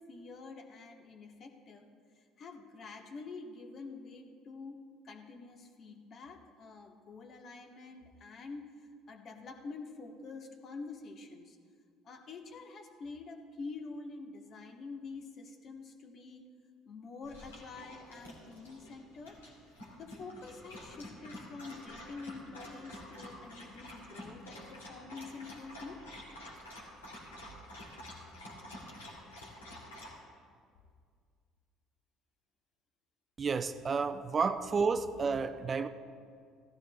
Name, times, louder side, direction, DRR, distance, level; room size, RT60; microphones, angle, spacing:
voice 1, 0.0-1.9 2.4-4.8 5.0-8.7 9.1-11.6 12.0-16.5 16.9-19.4 19.9-26.0, left 4 dB, 45° left, 4 dB, 1.2 m, -47 dB
Dog, 17.2-30.1, left 1 dB, 80° left, 2.5 m, -49 dB
voice 2, 33.4-35.9, right 5 dB, 35° right, 10 dB, 0.5 m, -31 dB
17.0 x 15.5 x 2.3 m, 2.1 s
figure-of-eight pair, 55°, 0 cm